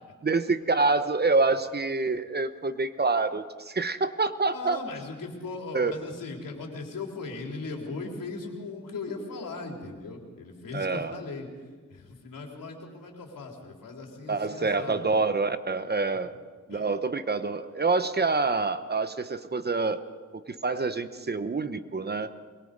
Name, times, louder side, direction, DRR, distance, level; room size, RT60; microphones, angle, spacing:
voice 1, 0.2-4.8 5.7-5.9 10.7-11.2 14.3-16.3 16.7-20.0 20.3-22.3, right 3 dB, 30° right, 11 dB, 1.0 m, -27 dB
voice 2, 4.5-11.5 11.9-15.4 16.7-16.9, left 3 dB, 90° left, 1 dB, 3.6 m, -38 dB
23.0 x 21.5 x 5.3 m, 1.5 s
wide cardioid pair, 105°, 32 cm